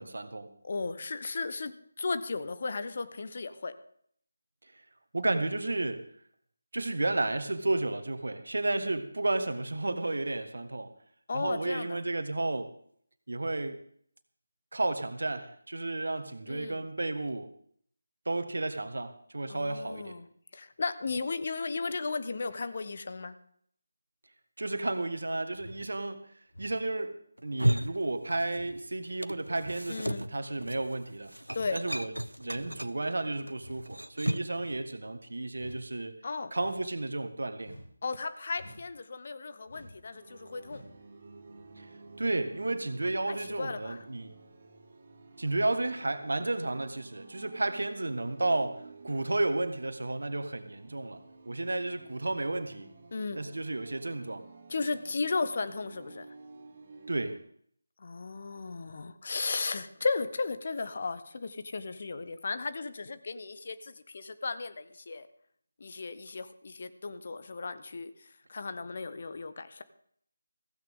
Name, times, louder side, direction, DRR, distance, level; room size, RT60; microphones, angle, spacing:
voice 1, 0.0-0.5 5.1-6.0 6.7-10.9 11.3-12.7 13.3-13.8 14.7-17.5 18.2-20.2 24.6-26.2 26.6-31.3 31.7-32.1 32.4-36.2 36.5-37.7 41.8-41.9 42.2-44.3 45.4-52.9 53.3-54.4 57.1-57.4, right 2 dB, 65° right, 9 dB, 1.6 m, -32 dB
voice 2, 0.6-3.7 8.7-8.9 11.3-12.0 16.5-16.8 19.5-20.3 20.5-23.3 29.9-30.3 31.5-31.8 36.2-36.5 38.0-40.8 43.3-44.0 53.1-53.4 54.7-56.3 58.0-65.3 65.8-69.8, left 4 dB, 45° left, 11 dB, 1.1 m, -35 dB
sound 1, 25.5-25.9 26.5-26.8 27.6-27.9 28.5-28.8 29.5-29.8 30.5-30.8 31.5-31.8 32.5-32.8 33.6-33.8 34.5-34.9 35.5-35.8 36.6-36.9 37.6-37.9 38.5-38.9 39.7-40.0 40.6-40.9 41.6-41.7, equal, 75° left, 4.9 m, -49 dB
sound 2, 27.4-28.8 29.0-34.6, right 1 dB, 90° right, 0.7 m, -34 dB
sound 3, 40.1-57.4, right 3 dB, 40° right, 2.8 m, -52 dB
15.5 x 15.5 x 3.7 m, 0.62 s
figure-of-eight pair, 160°, 0 cm